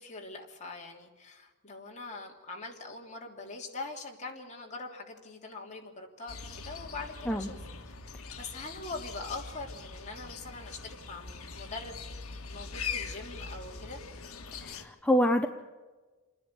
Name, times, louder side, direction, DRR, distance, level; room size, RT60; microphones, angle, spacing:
voice 1, 0.0-7.6 7.9-8.0 8.3-14.0, left 3 dB, 35° left, 0 dB, 3.1 m, -43 dB
sound 1, 6.3-14.8, left 5 dB, 70° left, 1.7 m, -42 dB
voice 2, 14.6-15.5, equal, 5° left, 4 dB, 0.7 m, -26 dB
28.5 x 10.5 x 8.6 m, 1.3 s
head